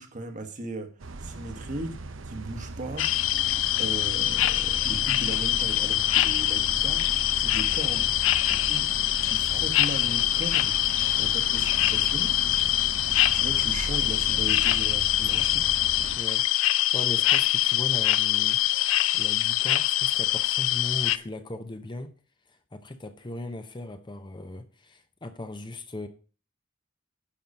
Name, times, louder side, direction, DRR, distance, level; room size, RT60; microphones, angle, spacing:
voice 1, 0.0-3.2 3.8-7.1 7.4-8.1 8.5-8.9 9.2-10.8 11.2-12.4 13.3-15.7, right 2 dB, 40° right, 1.3 m, -37 dB
sound 1, 1.0-16.2, right 2 dB, 75° right, 0.8 m, -38 dB
sound 2, 3.0-21.2, left 14 dB, 80° left, 0.4 m, -24 dB
voice 2, 16.2-18.6 18.9-22.1 22.7-26.1, left 2 dB, 25° left, 0.8 m, -38 dB
10.5 x 5.6 x 5.4 m
head